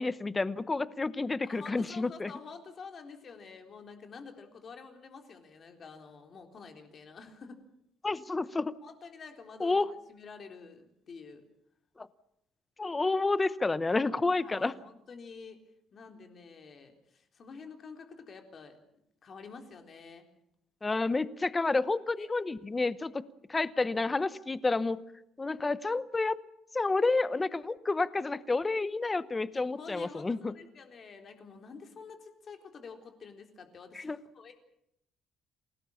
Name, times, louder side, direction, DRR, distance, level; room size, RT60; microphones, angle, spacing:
voice 1, 0.0-2.3 8.0-8.8 9.6-9.9 12.0-12.1 12.8-14.7 20.8-23.2 23.5-25.0 25.4-26.4 26.7-30.5 33.9-34.2, left 3 dB, 15° left, 15 dB, 0.9 m, -30 dB
voice 2, 1.4-7.6 8.8-9.8 10.1-11.4 14.3-15.6 15.9-18.8 19.2-20.3 22.2-22.3 29.5-34.6, left 5 dB, 35° left, 5 dB, 3.8 m, -48 dB
28.0 x 18.5 x 7.2 m, 0.77 s
cardioid pair, 150°, 0 cm